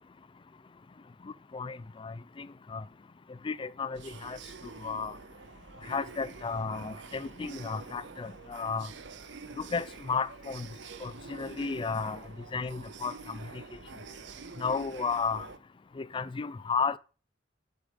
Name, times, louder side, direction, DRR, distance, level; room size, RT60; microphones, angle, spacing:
voice 1, 1.2-2.8 3.4-4.4 4.8-5.2 5.9-8.9 9.6-10.7 11.0-12.2 12.5-13.6 14.6-15.5 16.0-17.0, left 5 dB, 25° left, 0.3 m, -33 dB
sound 1, 3.9-15.6, right 4 dB, 60° right, 0.7 m, -47 dB
8.1 x 5.2 x 5.2 m
head